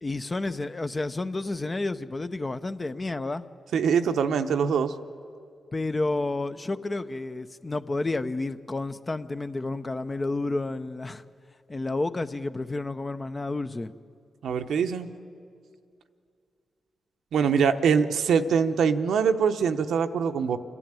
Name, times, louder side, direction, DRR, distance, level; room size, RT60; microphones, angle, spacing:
voice 1, 0.0-3.4 5.7-11.2 11.7-13.9, left 2 dB, 30° left, 11 dB, 0.8 m, -30 dB
voice 2, 3.7-4.9 14.4-15.1 17.3-20.6, right 6 dB, 80° right, 8 dB, 0.8 m, -23 dB
27.5 x 11.0 x 8.9 m, 2.4 s
cardioid pair, 60°, 0 cm